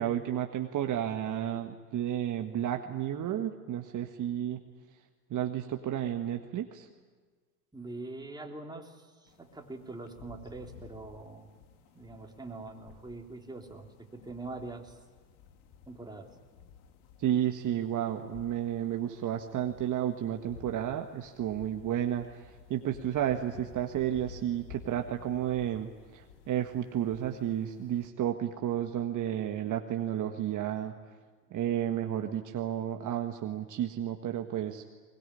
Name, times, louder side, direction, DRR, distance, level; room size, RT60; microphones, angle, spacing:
voice 1, 0.0-4.6 5.3-6.9 17.2-31.0 31.5-34.9, right 11 dB, 40° right, 5 dB, 1.6 m, -32 dB
voice 2, 7.7-11.5 11.9-15.0 15.9-16.3, right 2 dB, 10° right, 2 dB, 3.4 m, -43 dB
sound 1, 9.3-28.1, left 6 dB, 70° left, 2.5 m, -54 dB
22.0 x 21.5 x 10.0 m, 1.5 s
hypercardioid pair, 85°, 46 cm